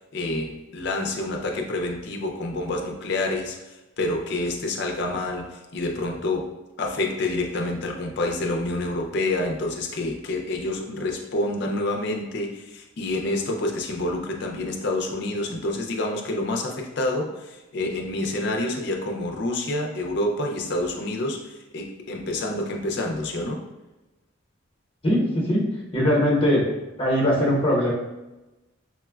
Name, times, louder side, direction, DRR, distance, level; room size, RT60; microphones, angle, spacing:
voice 1, 0.1-6.5 6.8-23.6, left 2 dB, 55° left, 1 dB, 0.4 m, -28 dB
voice 2, 25.0-25.7 25.9-26.6 27.0-27.9, equal, 25° left, -5 dB, 0.8 m, -20 dB
4.2 x 2.1 x 2.2 m, 1.0 s
head